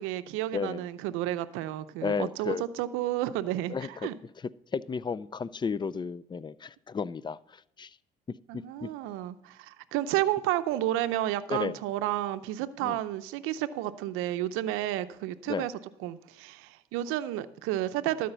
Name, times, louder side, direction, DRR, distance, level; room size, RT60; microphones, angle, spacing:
voice 1, 0.0-4.2 8.5-15.7 16.0-18.3, right 14 dB, 80° right, 11 dB, 0.6 m, -31 dB
voice 2, 0.5-0.9 2.0-2.6 3.7-3.9 4.7-7.9 8.5-8.9 11.5-11.7 12.8-13.0 15.5-15.7, left 5 dB, 20° left, 19 dB, 0.4 m, -33 dB
12.5 x 5.0 x 6.8 m, 0.83 s
supercardioid pair, 70°, 21 cm